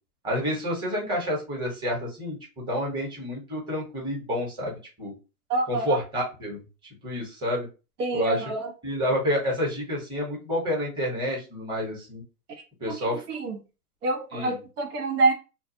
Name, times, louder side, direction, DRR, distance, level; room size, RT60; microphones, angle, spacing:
voice 1, 0.2-5.1 5.7-6.6 7.0-7.7 8.1-8.4 8.8-12.2 12.8-13.2 14.3-14.6, equal, 10° right, -3 dB, 1.0 m, -29 dB
voice 2, 5.5-6.0 8.0-8.7 12.5-13.6 14.0-15.3, right 3 dB, 80° right, 3 dB, 1.0 m, -27 dB
2.3 x 2.3 x 2.8 m, 0.31 s
hypercardioid pair, 145°, 45 cm